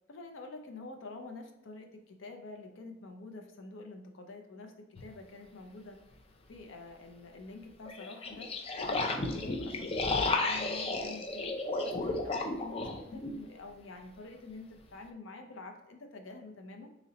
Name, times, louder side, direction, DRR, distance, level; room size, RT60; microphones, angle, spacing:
voice 1, 0.1-6.0 6.5-8.5 8.8-11.5 11.8-16.9, left 2 dB, 80° left, 4 dB, 0.6 m, -47 dB
sound 1, 5.0-5.1 7.9-13.4, left 3 dB, 30° left, 0.4 m, -33 dB
3.9 x 3.0 x 2.7 m, 0.85 s
head